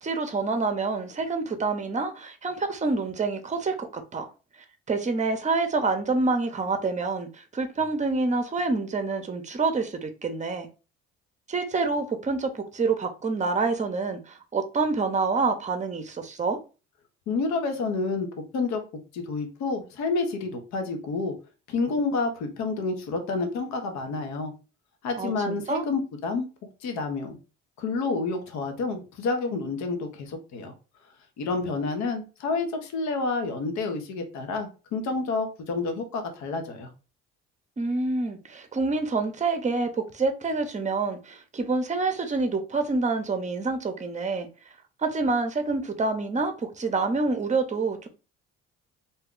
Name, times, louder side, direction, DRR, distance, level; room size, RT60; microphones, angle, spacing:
voice 1, 0.0-4.3 4.9-10.7 11.5-16.6 25.2-25.9 37.8-44.5 45.0-48.1, right 3 dB, 25° right, 0.7 m, -27 dB
voice 2, 17.3-18.3 18.5-18.8 19.1-21.3 21.7-24.5 25.0-26.5 26.8-27.4 27.8-30.7 31.4-36.9, left 3 dB, 70° left, 0.8 m, -29 dB
2.7 x 2.3 x 3.6 m
supercardioid pair, 70°, 29 cm